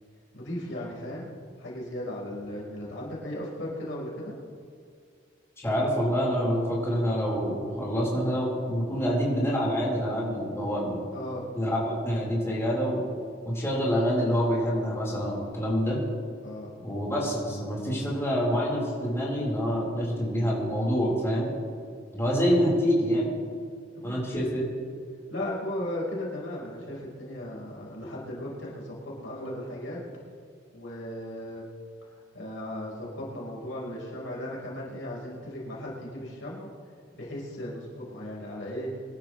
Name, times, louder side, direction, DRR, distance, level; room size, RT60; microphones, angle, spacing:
voice 1, 0.3-1.3 1.6-4.3 11.1-11.4 16.4-16.7 23.9-24.5 25.3-30.0 30.7-31.7 32.3-36.7 37.1-38.9, left 1 dB, 75° left, -4 dB, 4.3 m, -36 dB
voice 2, 5.6-11.0 11.5-13.0 13.4-16.0 16.8-21.5 22.1-23.3 24.0-24.7, equal, 15° left, -6 dB, 4.2 m, -26 dB
24.0 x 12.0 x 3.2 m, 2.2 s
head